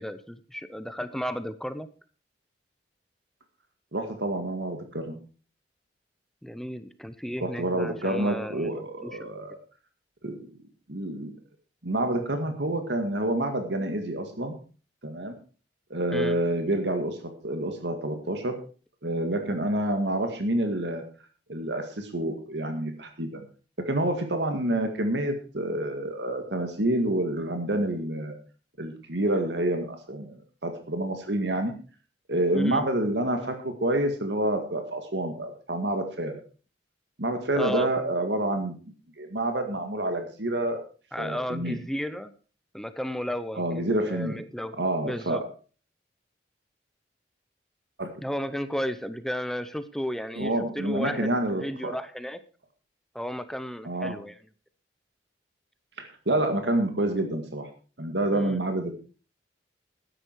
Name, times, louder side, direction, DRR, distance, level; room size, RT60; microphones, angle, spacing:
voice 1, 0.0-1.9 6.4-9.3 16.1-16.4 32.5-32.9 37.6-37.9 41.1-42.3 42.7-44.8 45.0-45.5 48.2-52.4 53.1-54.4 58.3-58.6, equal, ahead, 12 dB, 0.7 m, -34 dB
voice 2, 3.9-5.2 7.4-9.6 10.2-10.5 10.9-11.4 11.8-14.6 15.0-15.4 15.9-17.2 17.4-18.6 19.0-21.0 21.5-23.4 23.9-28.4 28.8-31.7 32.3-36.4 37.2-38.8 39.2-40.8 41.2-41.8 43.6-44.4 44.8-45.4 48.0-48.1 50.4-51.9 53.8-54.2 56.0-57.7 58.0-58.9, right 1 dB, 75° right, 5 dB, 1.9 m, -28 dB
12.5 x 10.0 x 4.6 m, 0.38 s
head